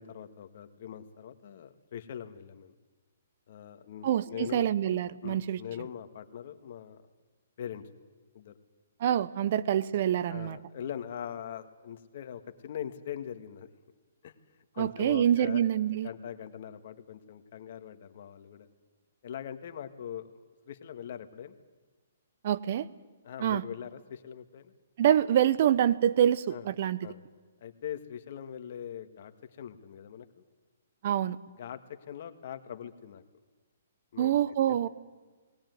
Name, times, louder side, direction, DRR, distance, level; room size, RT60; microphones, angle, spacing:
voice 1, 0.0-2.7 3.5-4.7 5.2-7.0 7.6-7.9 8.3-8.5 10.3-13.7 14.2-14.3 14.7-15.6 15.9-18.7 19.2-20.3 20.7-21.6 23.2-24.7 26.5-26.7 27.0-27.2 27.6-30.4 31.6-33.2 34.1-34.4 34.7-34.8, left 9 dB, 55° left, 9 dB, 1.7 m, -42 dB
voice 2, 4.0-5.6 9.0-10.6 14.8-16.1 22.4-22.9 23.4-23.6 25.0-27.0 31.0-31.4 34.2-34.9, right 10 dB, 50° right, 16 dB, 0.9 m, -26 dB
19.5 x 17.5 x 9.5 m, 1.4 s
hypercardioid pair, 145°, 0 cm